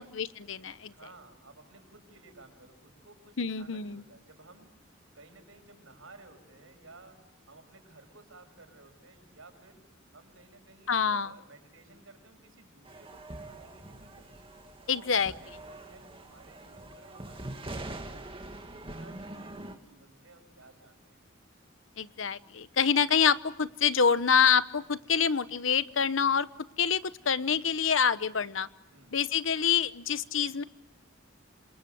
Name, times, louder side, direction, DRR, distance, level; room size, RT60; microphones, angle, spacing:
voice 1, 0.0-0.9 3.4-4.0 10.9-11.3 14.9-15.3 22.0-26.5 26.8-28.7 29.1-30.6, left 7 dB, 75° left, 15 dB, 1.0 m, -26 dB
voice 2, 0.8-7.1 7.5-14.5 14.9-21.2 24.9-25.2 28.9-29.2, right 2 dB, 90° right, 6 dB, 6.1 m, -56 dB
sound 1, 12.8-19.7, right 1 dB, 25° right, 2.2 m, -44 dB
28.0 x 26.5 x 7.7 m, 0.84 s
head